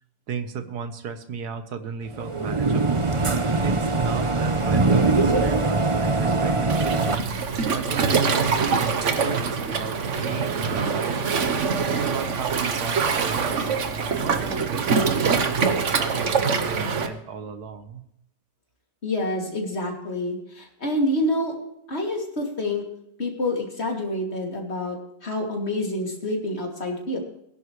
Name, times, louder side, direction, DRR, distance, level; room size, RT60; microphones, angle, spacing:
voice 1, 0.3-3.1 3.6-7.3 7.7-11.6 11.9-13.8 14.2-18.0, right 6 dB, 70° right, 9 dB, 1.7 m, -34 dB
sound 1, 2.1-7.2, right 3 dB, 30° right, 0.6 m, -22 dB
Waves surf, 6.7-17.1, right 5 dB, 50° right, 1.3 m, -24 dB
voice 2, 19.0-21.6 21.9-22.8 23.2-27.2, left 1 dB, 35° left, 1 dB, 2.9 m, -27 dB
19.5 x 11.0 x 3.2 m, 0.79 s
omnidirectional pair, 1.8 m